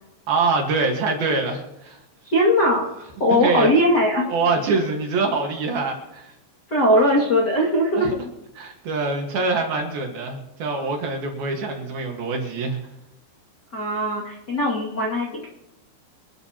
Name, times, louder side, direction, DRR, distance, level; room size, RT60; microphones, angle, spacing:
voice 1, 0.3-2.0 3.3-3.7 4.3-6.3 7.9-8.2 8.6-12.8, right 3 dB, 60° right, 2 dB, 3.0 m, -24 dB
voice 2, 2.2-4.3 6.7-8.1 13.7-15.5, equal, 40° left, -4 dB, 1.5 m, -20 dB
26.0 x 12.0 x 3.0 m, 0.91 s
omnidirectional pair, 5.8 m